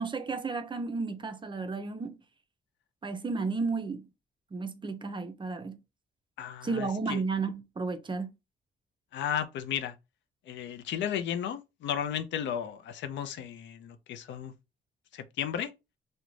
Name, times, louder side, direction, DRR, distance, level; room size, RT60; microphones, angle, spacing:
voice 1, 0.0-2.2 3.0-4.1 4.5-5.8 6.6-8.3, right 4 dB, 25° right, 0.4 m, -33 dB
voice 2, 6.4-7.2 9.1-9.9 10.5-14.5 15.1-15.7, left 9 dB, 70° left, 0.4 m, -34 dB
2.4 x 2.1 x 3.0 m
cardioid pair, 85°, 19 cm